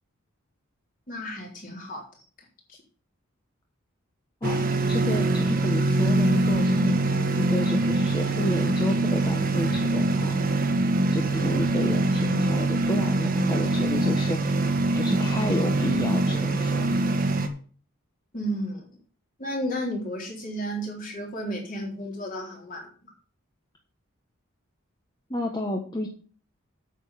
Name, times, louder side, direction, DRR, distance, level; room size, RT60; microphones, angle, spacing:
voice 1, 1.1-2.0 2.7-2.8 18.3-18.9 19.4-22.9, equal, 40° left, -1 dB, 3.8 m, -32 dB
voice 2, 4.4-7.0 7.4-10.4 11.1-14.6 14.9-17.1 25.3-26.1, left 1 dB, 20° left, 1 dB, 1.2 m, -31 dB
sound 1, 4.4-17.5, right 2 dB, 40° right, 1.4 m, -24 dB
9.0 x 7.1 x 5.8 m, 0.41 s
head